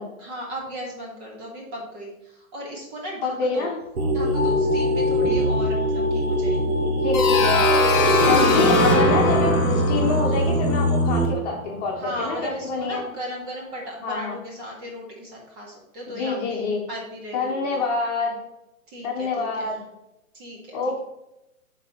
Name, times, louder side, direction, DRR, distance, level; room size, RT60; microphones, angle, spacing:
voice 1, 0.2-3.7 4.1-6.8 8.0-8.4 12.0-16.6 16.9-17.8 18.9-19.8 20.3-21.0, equal, 20° right, -1 dB, 1.7 m, -36 dB
voice 2, 3.2-3.7 7.0-7.6 8.1-13.0 14.0-14.4 16.1-16.8 17.3-18.4 19.0-19.8 20.7-21.0, left 4 dB, 30° left, -2 dB, 1.3 m, -26 dB
sound 1, 4.0-11.3, equal, 85° right, 1.4 m, -22 dB
sound 2, 4.3-14.1, left 2 dB, 50° right, 2.8 m, -38 dB
sound 3, 7.1-11.8, left 2 dB, 10° left, 0.5 m, -21 dB
11.0 x 4.1 x 3.0 m, 0.89 s
hypercardioid pair, 150°, 42 cm